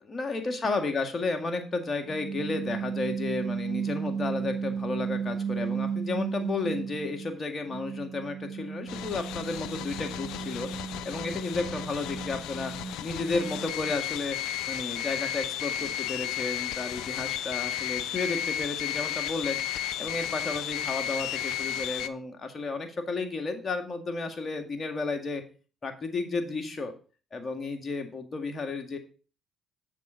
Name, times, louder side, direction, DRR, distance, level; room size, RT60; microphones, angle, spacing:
voice 1, 0.0-10.7 11.0-12.7 13.0-14.4 14.7-19.6 20.0-25.4 25.8-26.9 27.3-29.0, left 3 dB, 40° left, 4 dB, 2.1 m, -32 dB
sound 1, 2.1-7.3 7.7-13.9, right 6 dB, 10° right, 4.8 m, -34 dB
sound 2, 8.9-22.1, left 11 dB, 75° left, 0.4 m, -33 dB
7.5 x 7.5 x 4.0 m, 0.36 s
hypercardioid pair, 55°, 0 cm